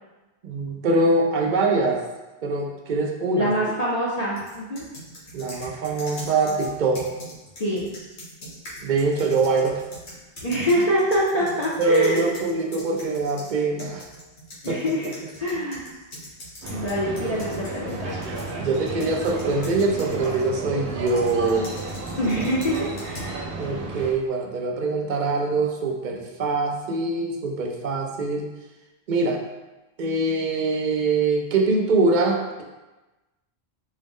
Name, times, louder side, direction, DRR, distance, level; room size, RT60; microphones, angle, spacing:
voice 1, 0.4-2.0 2.4-3.5 5.3-7.0 8.8-9.8 11.8-14.0 14.7-14.9 15.5-15.6 18.2-21.8 23.6-28.5 29.1-29.4 30.0-32.6, right 3 dB, 60° right, 0 dB, 0.6 m, -23 dB
voice 2, 3.4-4.8 7.6-7.9 10.4-12.3 14.6-15.1 15.4-15.9 16.7-18.1 22.2-23.4, equal, 45° left, -7 dB, 0.6 m, -24 dB
sound 1, 4.4-13.5 13.8-20.5 21.1-23.3, equal, 75° left, 1.4 m, -42 dB
sound 2, 16.6-24.1, right 2 dB, 85° right, 1.0 m, -33 dB
4.4 x 2.1 x 3.5 m, 1.1 s
omnidirectional pair, 1.1 m